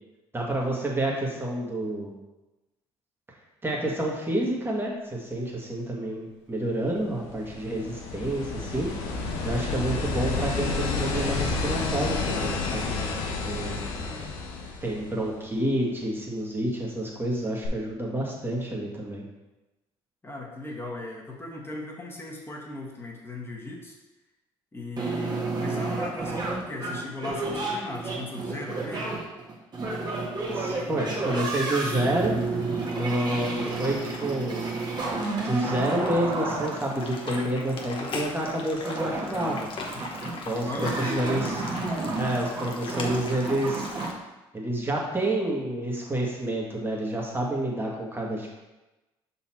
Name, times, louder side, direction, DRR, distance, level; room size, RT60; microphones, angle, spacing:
voice 1, 0.3-2.2 3.6-8.9 9.4-12.9 13.4-13.8 14.8-19.2 30.5-32.4 32.9-34.7 35.1-39.7 40.4-41.5 42.2-43.9 44.5-48.5, right 1 dB, 20° right, -2 dB, 1.8 m, -29 dB
sound 1, 7.0-15.5 17.6-17.7, left 3 dB, 85° left, 1.0 m, -30 dB
voice 2, 13.6-14.3 20.2-24.0 24.7-29.1 37.4-37.9 39.9-40.1 40.5-41.5, left 2 dB, 20° left, -3 dB, 1.5 m, -38 dB
sound 2, 25.0-44.1, right 3 dB, 35° right, 1.7 m, -31 dB
sound 3, 32.1-44.1, left 3 dB, 50° left, 1.1 m, -40 dB
5.6 x 4.2 x 4.4 m, 1.1 s
supercardioid pair, 70°, 12 cm